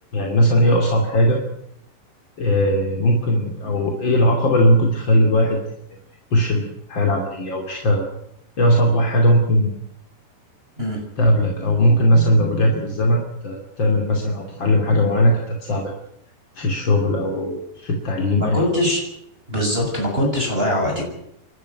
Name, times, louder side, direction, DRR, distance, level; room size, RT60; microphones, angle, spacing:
voice 1, 0.1-1.4 2.4-5.6 6.3-8.1 8.6-9.8 11.2-15.9 16.5-18.6, equal, 30° left, 1 dB, 2.7 m, -19 dB
voice 2, 18.3-19.0 19.5-21.0, equal, 10° right, 0 dB, 6.4 m, -22 dB
28.5 x 12.5 x 9.6 m, 0.77 s
omnidirectional pair, 5.1 m